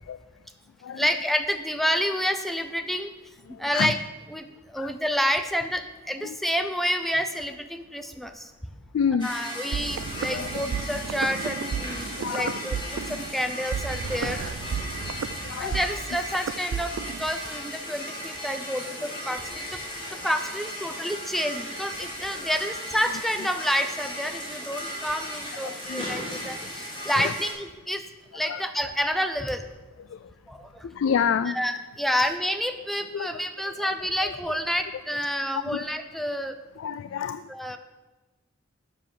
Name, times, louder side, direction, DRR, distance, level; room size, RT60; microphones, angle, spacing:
voice 1, 1.0-3.1 3.5-4.0 4.3-8.5 9.2-14.4 15.6-19.8 20.1-28.0 28.3-29.7 30.5-30.9 31.5-36.6 37.5-37.8, equal, ahead, 8 dB, 0.5 m, -29 dB
voice 2, 8.9-9.3 10.3-10.5 12.2-12.6 15.4-15.8 25.6-26.1 27.2-27.3 28.5-28.6 30.8-31.6 33.1-33.3 34.2-34.3 36.8-37.4, left 7 dB, 75° left, 14 dB, 0.3 m, -27 dB
sound 1, 9.2-27.5, equal, 25° left, 2.5 m, -36 dB
sound 2, 9.7-17.3, right 6 dB, 85° right, 0.4 m, -33 dB
7.5 x 6.5 x 7.4 m, 1.2 s
head